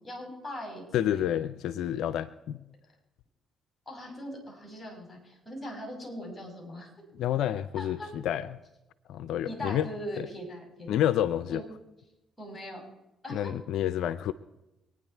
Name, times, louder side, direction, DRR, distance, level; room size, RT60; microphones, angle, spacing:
voice 1, 0.0-1.4 3.9-6.9 7.8-8.1 9.5-11.0 11.5-11.6 12.4-12.8 13.2-13.4, equal, 15° left, 1 dB, 6.7 m, -40 dB
voice 2, 0.9-2.6 7.1-8.6 9.1-9.9 10.2-10.3 10.9-11.6 13.3-14.3, left 11 dB, 75° left, 14 dB, 0.4 m, -29 dB
24.5 x 9.7 x 4.5 m, 0.94 s
supercardioid pair, 70°, 0 cm